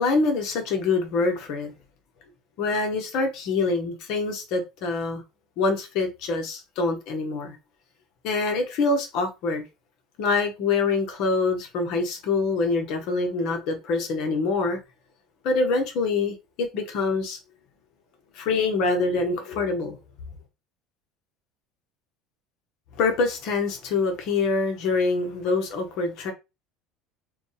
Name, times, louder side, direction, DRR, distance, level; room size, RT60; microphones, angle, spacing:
voice 1, 0.0-1.7 2.6-5.2 5.6-7.6 8.2-9.6 10.2-14.8 15.4-17.4 18.3-20.0 22.9-26.3, left 3 dB, 60° left, 1.2 m, -25 dB
5.0 x 2.4 x 3.4 m
supercardioid pair, 115°, 0 cm